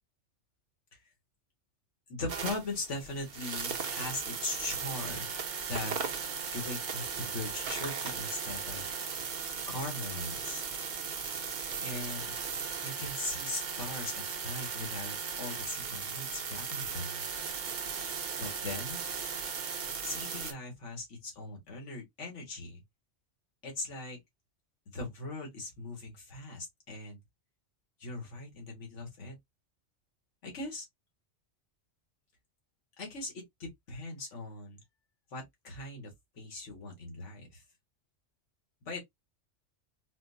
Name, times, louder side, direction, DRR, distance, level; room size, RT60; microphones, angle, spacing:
voice 1, 2.1-5.3 5.7-9.0 9.7-10.6 11.8-12.3 12.8-17.2 18.4-19.0 20.0-22.8 23.6-24.2 24.9-27.2 28.0-29.3 30.4-30.9 33.0-34.8 35.3-37.6 38.8-39.0, left 2 dB, 90° left, 1.6 m, -40 dB
sound 1, 2.3-20.5, right 6 dB, 50° right, 0.6 m, -37 dB
4.3 x 2.1 x 2.5 m
omnidirectional pair, 1.2 m